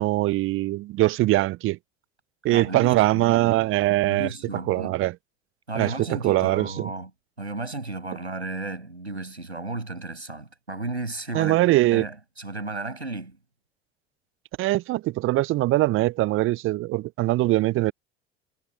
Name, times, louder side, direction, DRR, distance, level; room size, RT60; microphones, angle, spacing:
voice 1, 0.0-1.8 2.4-4.3 4.7-5.1 5.8-6.9 11.3-12.1 14.6-17.9, right 17 dB, 40° right, 0.6 m, -22 dB
voice 2, 2.5-3.3 4.0-5.0 5.7-7.1 7.4-13.4, right 2 dB, 90° right, 6.8 m, -34 dB
figure-of-eight pair, 65°, 32 cm